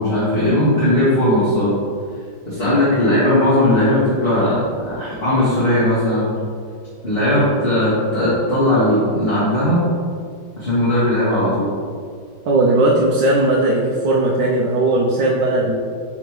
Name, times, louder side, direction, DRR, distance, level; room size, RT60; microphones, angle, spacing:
voice 1, 0.0-1.7 2.4-6.3 7.0-9.8 10.6-11.7, left 1 dB, 35° left, -11 dB, 1.6 m, -17 dB
voice 2, 12.4-15.8, right 2 dB, 75° right, -4 dB, 1.4 m, -17 dB
9.2 x 3.6 x 3.2 m, 2.1 s
omnidirectional pair, 2.0 m